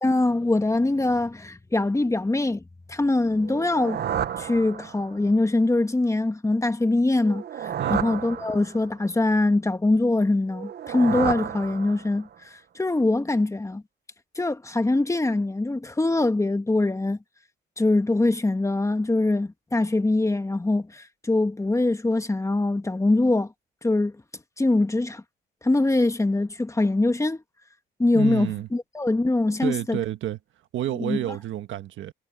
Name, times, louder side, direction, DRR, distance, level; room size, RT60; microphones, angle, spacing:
voice 1, 0.0-2.6 2.9-4.0 4.4-12.3 12.8-13.8 14.4-17.2 17.8-23.5 23.8-24.1 24.6-25.2 25.6-27.4 28.0-30.0 31.0-31.4, left 2 dB, 15° left, 1.8 m, -23 dB
sound 1, 3.4-5.3 7.2-9.0 10.5-12.3, right 9 dB, 55° right, 1.1 m, -31 dB
voice 2, 28.1-28.7 29.6-30.4 30.7-32.1, right 12 dB, 75° right, 1.5 m, -30 dB
cardioid pair, 90°, 20 cm